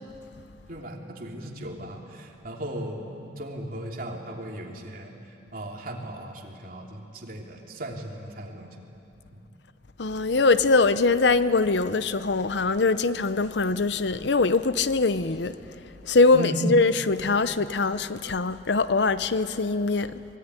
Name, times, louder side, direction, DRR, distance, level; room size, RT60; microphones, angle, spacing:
voice 1, 0.7-8.8 9.3-9.4 16.3-16.7, right 1 dB, 50° right, 3.1 m, -37 dB
voice 2, 10.0-15.5 16.0-20.2, left 3 dB, 70° left, 0.8 m, -22 dB
24.0 x 22.5 x 9.8 m
head